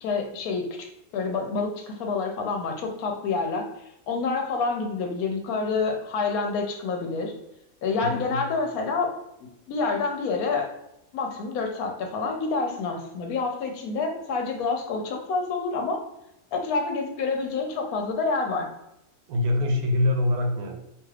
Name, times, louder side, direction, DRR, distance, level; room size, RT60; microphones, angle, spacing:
voice 1, 0.0-3.7 4.1-7.3 7.8-9.1 9.4-10.7 11.1-16.0 16.5-18.7, left 4 dB, 85° left, 3 dB, 1.1 m, -28 dB
voice 2, 8.0-8.4 19.3-20.8, left 2 dB, 80° right, 3 dB, 1.1 m, -24 dB
2.8 x 2.3 x 3.2 m, 0.85 s
omnidirectional pair, 1.5 m